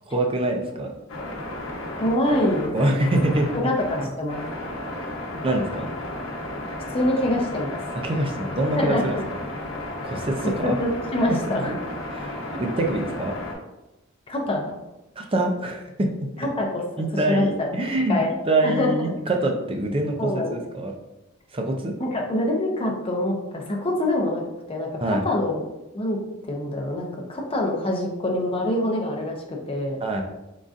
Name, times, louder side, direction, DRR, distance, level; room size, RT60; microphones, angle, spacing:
voice 1, 0.1-0.9 2.7-3.7 5.4-5.9 8.0-9.4 10.0-10.8 11.3-11.4 11.6-11.8 12.1-13.4 15.2-16.1 17.0-18.2 18.5-20.9 21.5-21.9 25.0-25.2 30.0-30.2, right 1 dB, 25° right, 3 dB, 0.5 m, -25 dB
sound 1, 1.1-13.5, left 1 dB, 85° left, 0.8 m, -33 dB
voice 2, 2.0-3.0 3.5-4.4 6.9-7.8 8.8-9.1 10.4-11.7 12.5-12.6 14.3-14.7 16.4-16.8 17.3-17.7 18.1-18.3 18.6-19.2 20.2-20.6 22.0-24.4 24.7-25.6 25.9-26.2 26.4-30.0, left 1 dB, 30° left, 0 dB, 0.7 m, -25 dB
3.9 x 3.7 x 2.4 m, 0.99 s
head